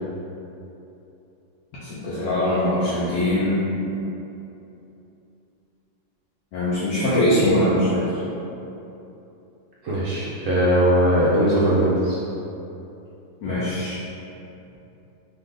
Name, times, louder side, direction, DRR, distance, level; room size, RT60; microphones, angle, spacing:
voice 1, 1.8-3.6 6.5-8.2 13.4-14.0, left 1 dB, 80° left, -10 dB, 1.5 m, -22 dB
voice 2, 9.8-12.2, equal, 70° right, -7 dB, 0.7 m, -19 dB
4.7 x 2.5 x 3.7 m, 2.9 s
omnidirectional pair, 2.0 m